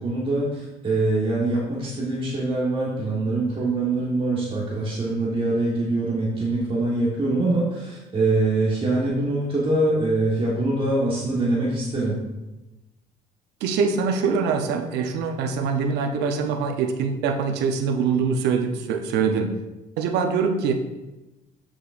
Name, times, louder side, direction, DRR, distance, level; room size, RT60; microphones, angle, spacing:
voice 1, 0.0-12.1, right 2 dB, 30° right, -5 dB, 1.4 m, -24 dB
voice 2, 13.6-19.5 20.0-20.7, right 5 dB, 85° right, 5 dB, 0.8 m, -23 dB
8.1 x 6.2 x 2.5 m, 1.0 s
cardioid pair, 110°, 17 cm